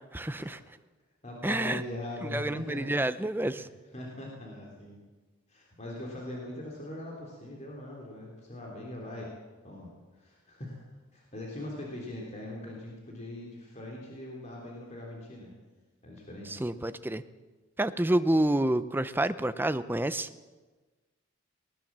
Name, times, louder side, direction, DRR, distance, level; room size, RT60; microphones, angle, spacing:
voice 1, 0.1-0.6 1.4-1.8 2.3-3.7 16.6-17.2 17.8-20.3, right 1 dB, 10° right, 12 dB, 0.6 m, -28 dB
voice 2, 1.2-2.9 3.4-3.7 3.9-5.0 5.5-9.3 9.6-15.5 16.0-16.7, left 1 dB, 30° left, -2 dB, 3.3 m, -41 dB
19.5 x 19.0 x 7.5 m, 1.3 s
head